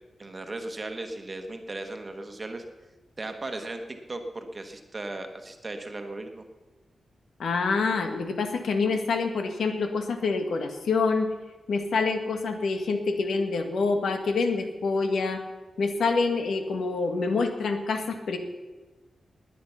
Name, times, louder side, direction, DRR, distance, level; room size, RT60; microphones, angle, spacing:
voice 1, 0.2-2.6 3.2-6.4, right 2 dB, 25° right, 5 dB, 1.3 m, -37 dB
voice 2, 7.4-11.3 11.7-15.4 15.8-18.4, left 4 dB, 85° left, 6 dB, 1.7 m, -26 dB
20.0 x 9.4 x 5.8 m, 1.2 s
wide cardioid pair, 165°, 0 cm